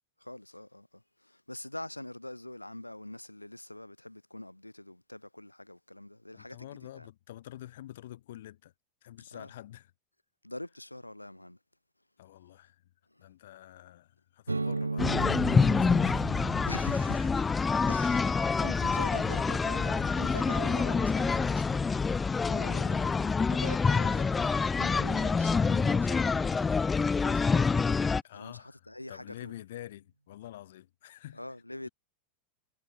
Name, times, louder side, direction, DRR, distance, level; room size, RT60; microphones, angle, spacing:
voice 1, 0.2-7.1 9.3-9.5 10.4-11.6 13.1-13.3 16.7-17.6 17.9-21.8 22.5-26.8 27.2-28.0 28.3-29.5 31.3-31.9, left 1 dB, 85° left, 5.6 m, -44 dB
voice 2, 6.3-8.7 9.0-9.9 12.2-12.8 13.2-16.3 18.4-18.6 28.2-31.4 31.8-31.9, left 13 dB, 55° left, 7.7 m, -47 dB
sound 1, 14.5-22.1, right 3 dB, 80° right, 5.1 m, -39 dB
sound 2, 15.0-28.2, left 4 dB, 15° left, 0.3 m, -27 dB
figure-of-eight pair, 90°, 0 cm